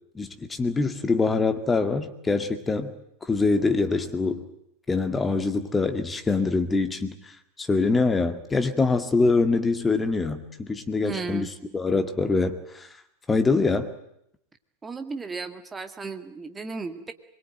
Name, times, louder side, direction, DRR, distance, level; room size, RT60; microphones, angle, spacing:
voice 1, 0.2-2.9 3.3-4.5 4.9-7.1 7.6-11.5 11.7-12.9 13.3-13.9, left 3 dB, 15° left, 8 dB, 2.1 m, -24 dB
voice 2, 11.0-11.5 14.8-17.1, right 4 dB, 15° right, 7 dB, 2.1 m, -34 dB
24.0 x 22.0 x 9.2 m, 0.77 s
figure-of-eight pair, 90°, 0 cm